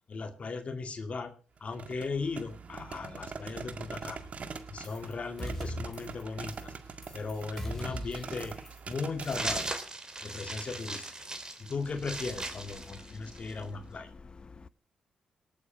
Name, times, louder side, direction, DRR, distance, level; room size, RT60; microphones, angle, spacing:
voice 1, 0.1-1.3 1.6-4.3 4.7-6.7 7.1-8.5 8.9-9.7 10.2-11.1 11.6-14.1, left 4 dB, 50° left, 2.2 m, -37 dB
sound 1, 1.6-9.8, right 5 dB, 55° right, 1.8 m, -43 dB
sound 2, 4.8-5.1 5.4-6.2 6.5-6.8 7.0-8.9 9.2-9.5, equal, 10° left, 5.7 m, -40 dB
sound 3, 9.2-13.6, right 2 dB, 25° right, 3.5 m, -38 dB
voice 2, 12.8-14.7, left 4 dB, 35° left, 0.8 m, -50 dB
19.0 x 8.7 x 6.2 m
supercardioid pair, 55°, 3 cm